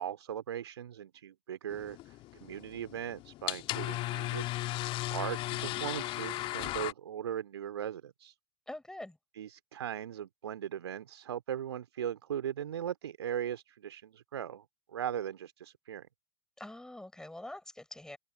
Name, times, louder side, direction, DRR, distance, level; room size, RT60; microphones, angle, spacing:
voice 1, 0.0-8.3 9.3-16.1, right 9 dB, 65° right, 2.9 m, -39 dB
sound 1, 1.7-6.9, left 17 dB, 35° left, 1.9 m, -36 dB
voice 2, 8.7-9.2 16.6-18.2, left 1 dB, 5° left, 6.0 m, -44 dB
open air
figure-of-eight pair, 90°, 15 cm